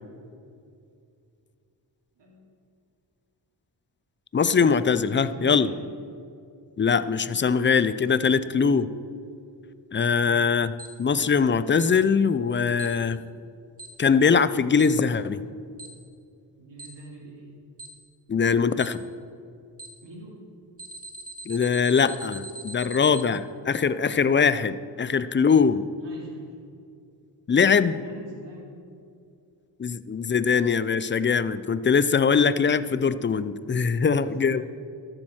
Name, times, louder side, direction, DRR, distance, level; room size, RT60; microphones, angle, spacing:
voice 1, 4.3-5.7 6.8-8.8 9.9-10.7 11.0-13.2 14.0-15.4 18.3-19.0 21.5-25.8 27.5-28.0 29.8-34.6, left 6 dB, 25° left, 14 dB, 0.5 m, -22 dB
voice 2, 5.1-5.8 8.3-8.9 10.2-10.4 16.6-17.6 20.0-20.4 25.3-25.6 26.0-26.5 27.9-28.8 31.7-31.9 33.9-34.7, right 2 dB, 70° right, -3 dB, 3.4 m, -45 dB
Alarm, 10.8-10.9 11.8-11.9 12.8-12.9 13.8-13.9 14.8-14.9 15.8-15.9 16.8-16.9 17.8-17.9 18.8-18.9 19.8-19.9 20.8-23.2, right 2 dB, 30° right, 2.4 m, -40 dB
13.0 x 7.5 x 6.3 m, 2.5 s
cardioid pair, 70°, 44 cm